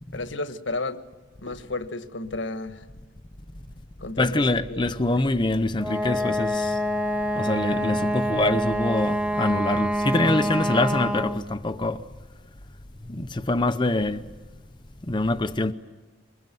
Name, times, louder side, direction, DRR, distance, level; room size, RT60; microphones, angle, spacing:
voice 1, 0.1-1.0 1.4-2.9 4.0-5.2, left 2 dB, 70° left, 1.5 m, -33 dB
voice 2, 4.2-6.8 7.3-12.0 13.1-14.2 15.1-15.7, left 2 dB, 25° left, 0.7 m, -24 dB
Wind instrument woodwind instrument, 5.8-11.5, equal, 5° right, 1.6 m, -26 dB
sound 1, 10.1-12.0, right 1 dB, 70° right, 4.8 m, -42 dB
24.5 x 21.5 x 9.2 m
head